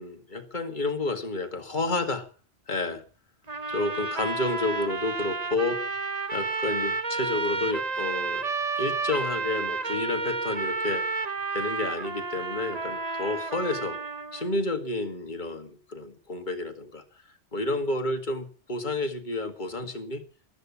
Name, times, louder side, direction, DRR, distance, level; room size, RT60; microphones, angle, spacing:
voice 1, 0.0-2.3 2.7-3.0 3.7-5.9 6.3-8.5 8.8-11.1 11.5-14.0 14.3-17.0 17.5-20.2, left 2 dB, 45° left, 7 dB, 2.2 m, -30 dB
sound 1, 3.5-14.5, right 4 dB, 35° right, 1.4 m, -31 dB
15.0 x 13.5 x 7.1 m, 0.38 s
omnidirectional pair, 1.2 m